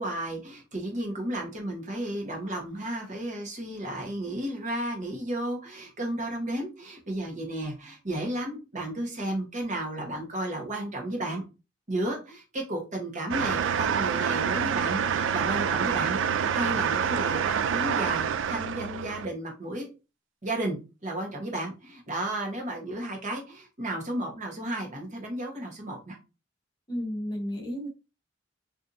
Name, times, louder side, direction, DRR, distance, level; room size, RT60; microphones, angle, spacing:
voice 1, 0.0-11.4 11.9-19.9 20.4-20.8 21.0-26.2, right 1 dB, 40° right, 1 dB, 1.0 m, -33 dB
sound 1, 13.3-19.2, right 7 dB, 85° right, 0.3 m, -27 dB
voice 2, 26.9-27.9, equal, 20° left, 1 dB, 0.8 m, -32 dB
4.2 x 2.6 x 2.5 m, 0.29 s
head